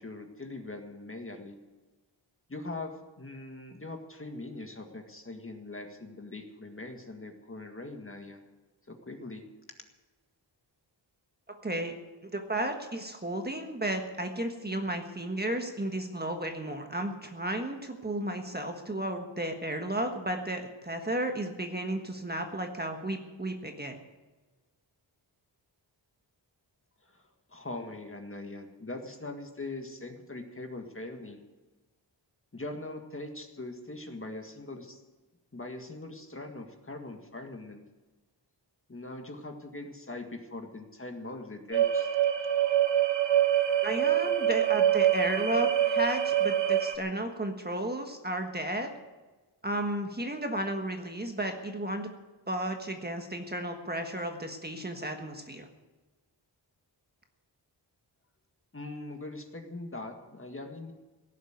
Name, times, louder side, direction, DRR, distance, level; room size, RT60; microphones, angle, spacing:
voice 1, 0.0-1.6 2.5-8.4 8.9-9.4 27.0-31.4 32.5-35.0 35.5-37.8 38.9-42.1 58.7-60.9, left 2 dB, 30° left, 4 dB, 1.9 m, -41 dB
voice 2, 11.6-11.9 12.2-24.0 43.8-48.9 49.6-52.1 52.5-55.7, right 1 dB, 20° right, 4 dB, 1.4 m, -33 dB
sound 1, 41.7-47.0, right 10 dB, 75° right, 1.2 m, -25 dB
17.5 x 7.5 x 9.5 m, 1.2 s
wide cardioid pair, 125°, 44 cm